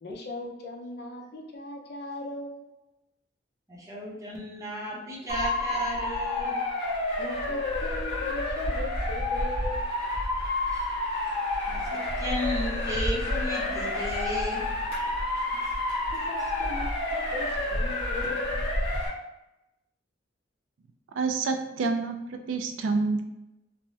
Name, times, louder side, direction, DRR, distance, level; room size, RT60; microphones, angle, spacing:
voice 1, 0.0-2.7 7.2-9.8 16.1-18.6, left 2 dB, 60° left, 0 dB, 0.5 m, -38 dB
voice 2, 3.7-6.6 10.7-10.9 11.7-14.6 15.3-15.4, equal, 15° right, -4 dB, 0.7 m, -34 dB
Motor vehicle (road) / Siren, 5.3-19.1, left 1 dB, 30° left, 1.2 m, -29 dB
voice 3, 21.1-23.2, right 4 dB, 75° right, 5 dB, 0.3 m, -28 dB
3.3 x 2.1 x 2.7 m, 0.94 s
head